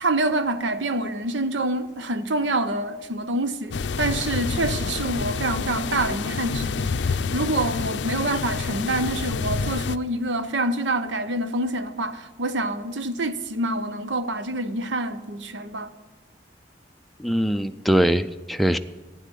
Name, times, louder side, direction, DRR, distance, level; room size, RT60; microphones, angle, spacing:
voice 1, 0.0-15.9, right 2 dB, 80° right, 0.9 m, -26 dB
sound 1, 3.7-10.0, left 4 dB, 70° left, 0.5 m, -28 dB
voice 2, 17.2-18.8, equal, ahead, 0.4 m, -22 dB
12.0 x 9.3 x 9.9 m
head